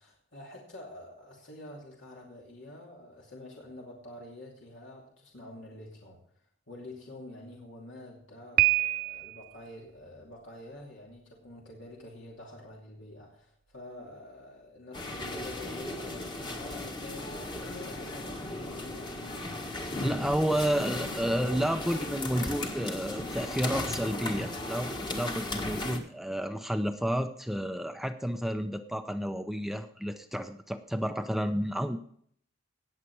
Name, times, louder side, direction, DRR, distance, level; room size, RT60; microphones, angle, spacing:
voice 1, 0.0-19.6, left 2 dB, 75° left, -3 dB, 2.6 m, -48 dB
Piano, 8.6-9.5, right 17 dB, 45° right, 0.4 m, -26 dB
sound 1, 14.9-26.0, left 2 dB, 20° left, 1.4 m, -36 dB
voice 2, 20.0-32.0, equal, ahead, 8 dB, 0.6 m, -31 dB
18.0 x 7.4 x 4.7 m, 0.62 s
head